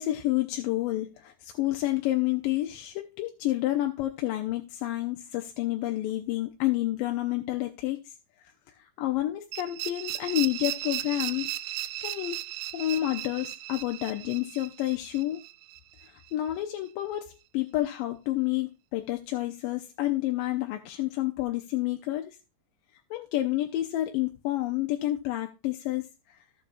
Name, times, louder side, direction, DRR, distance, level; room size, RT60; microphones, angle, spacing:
voice 1, 0.0-8.1 8.8-11.5 12.0-12.4 12.7-15.4 16.0-22.4 23.1-26.4, left 15 dB, 85° left, 4 dB, 2.4 m, -29 dB
sound 1, 9.5-16.3, right 15 dB, 85° right, 2.3 m, -36 dB
15.0 x 7.0 x 2.4 m, 0.27 s
omnidirectional pair, 3.9 m